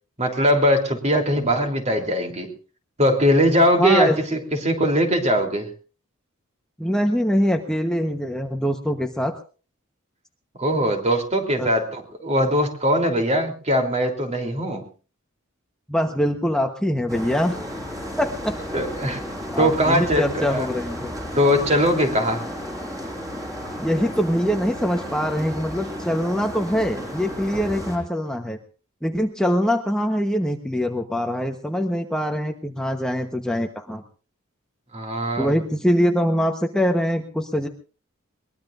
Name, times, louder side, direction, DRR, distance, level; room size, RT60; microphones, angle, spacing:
voice 1, 0.2-2.5 3.0-5.7 10.6-14.8 18.7-19.2 19.6-20.7 21.3-22.4 34.9-35.5, equal, 30° right, 4 dB, 3.4 m, -21 dB
voice 2, 3.8-4.2 6.8-9.3 11.6-11.7 15.9-17.6 18.2-18.6 19.5-21.1 23.8-28.6 29.0-34.0 35.4-37.7, equal, 5° left, 4 dB, 1.1 m, -23 dB
sound 1, 17.1-28.0, equal, 15° right, 6.0 m, -33 dB
22.5 x 20.5 x 2.6 m, 0.37 s
head